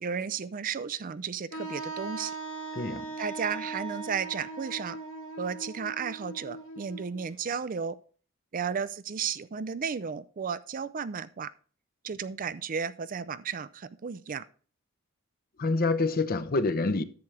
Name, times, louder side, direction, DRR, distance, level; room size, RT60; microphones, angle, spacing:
voice 1, 0.0-2.4 3.2-5.0 5.4-8.0 8.5-11.5 12.0-14.5, right 6 dB, 40° right, 0.4 m, -33 dB
Wind instrument woodwind instrument, 1.5-7.3, right 3 dB, 60° left, 1.8 m, -39 dB
voice 2, 2.8-3.1 15.6-17.0, left 3 dB, 45° left, 0.7 m, -27 dB
10.5 x 8.1 x 3.3 m
head